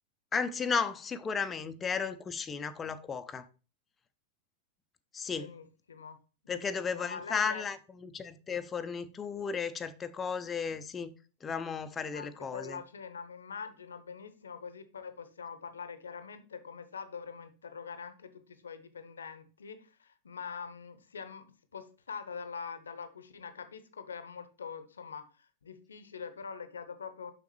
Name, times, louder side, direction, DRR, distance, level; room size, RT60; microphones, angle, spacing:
voice 1, 0.3-3.5 5.1-5.5 6.5-11.1 11.4-12.8, left 5 dB, 20° left, 0.5 m, -34 dB
voice 2, 5.3-6.2 6.4-7.6 12.1-21.5 21.7-27.3, left 6 dB, 70° left, 0.8 m, -44 dB
6.9 x 5.8 x 3.1 m
figure-of-eight pair, 90°, 0 cm